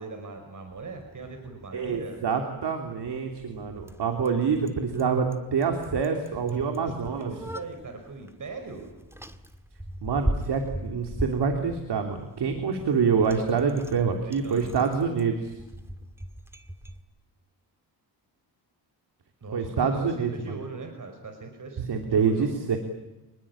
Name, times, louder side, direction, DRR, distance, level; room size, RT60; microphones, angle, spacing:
voice 1, 0.0-2.2 6.5-8.9 14.0-14.7 19.4-22.5, right 3 dB, 45° right, 5 dB, 5.4 m, -40 dB
Bicycle, 0.7-17.0, equal, 5° right, 1.9 m, -39 dB
voice 2, 1.7-7.3 10.0-15.5 19.5-20.5 21.8-22.8, right 5 dB, 65° right, 4 dB, 3.3 m, -26 dB
27.5 x 20.5 x 8.7 m, 1.0 s
cardioid pair, 95°, 43 cm